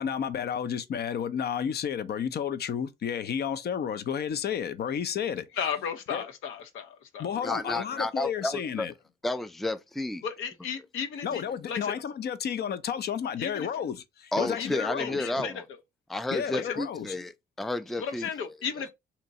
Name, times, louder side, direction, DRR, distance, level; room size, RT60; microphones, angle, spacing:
voice 1, 0.0-5.5 6.1-6.2 7.2-8.9 11.2-15.2 16.3-17.2 18.2-18.3, left 8 dB, 55° left, 0.6 m, -31 dB
voice 2, 5.6-7.5 10.2-11.9 13.4-13.7 14.6-15.6 16.6-16.7 18.0-18.9, left 7 dB, 90° left, 0.7 m, -35 dB
voice 3, 7.4-8.9 9.2-10.2 11.3-11.4 14.3-15.6 16.1-17.3 17.6-18.8, left 2 dB, ahead, 0.3 m, -32 dB
2.9 x 2.6 x 4.1 m
cardioid pair, 90°, 20 cm